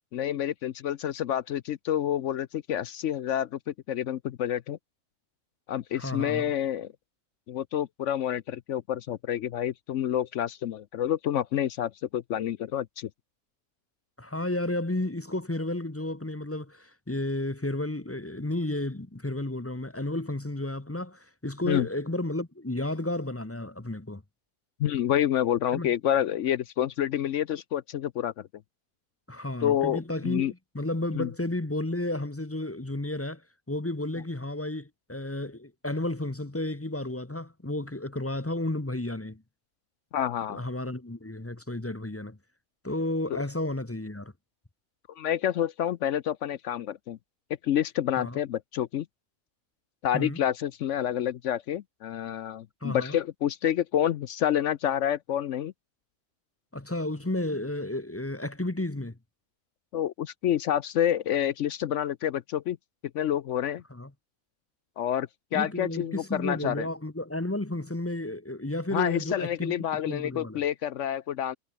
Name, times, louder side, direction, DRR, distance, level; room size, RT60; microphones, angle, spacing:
voice 1, 0.1-4.8 5.7-6.9 7.5-13.1 21.6-21.9 24.8-28.3 29.6-30.5 31.1-31.3 40.1-40.6 43.3-43.4 45.2-47.2 47.6-49.1 50.0-55.7 59.9-62.8 63.1-63.8 65.0-66.9 68.9-71.6, left 10 dB, 65° left, 0.8 m, -28 dB
voice 2, 5.9-6.5 14.2-24.2 25.7-25.9 29.3-33.4 33.7-39.4 40.5-42.4 42.8-44.3 48.2-48.4 50.1-50.4 52.8-53.2 56.7-59.2 63.9-64.1 65.5-69.7 70.0-70.6, left 1 dB, 10° left, 0.9 m, -32 dB
omnidirectional pair, 1.6 m